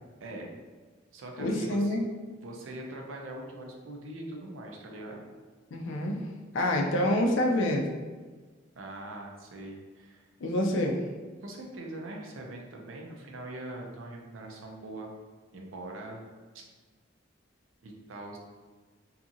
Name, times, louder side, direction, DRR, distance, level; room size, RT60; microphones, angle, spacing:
voice 1, 0.2-0.5 1.1-2.0 2.4-5.2 8.7-10.3 11.4-15.1 15.5-16.3 16.5-16.6 17.8-18.4, right 1 dB, 90° right, 1 dB, 0.5 m, -42 dB
voice 2, 1.4-2.0 5.7-6.3 6.5-7.9 10.4-11.0, left 1 dB, 65° left, 1 dB, 0.4 m, -27 dB
2.7 x 2.4 x 2.6 m, 1.4 s
head